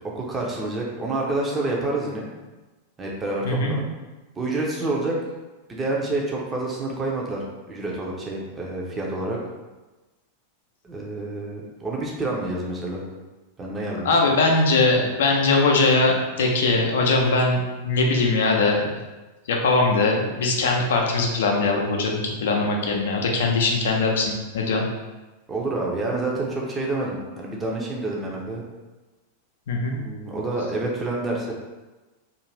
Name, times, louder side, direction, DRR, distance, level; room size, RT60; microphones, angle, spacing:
voice 1, 0.1-2.3 3.0-3.8 4.4-5.2 5.7-9.4 10.8-13.0 13.6-14.1 25.5-28.6 29.9-31.5, right 2 dB, 15° right, -2 dB, 0.6 m, -28 dB
voice 2, 14.0-18.9 19.5-24.8 29.7-29.9, left 3 dB, 60° left, 0 dB, 0.5 m, -21 dB
2.5 x 2.5 x 3.2 m, 1.2 s
figure-of-eight pair, 90°, 0 cm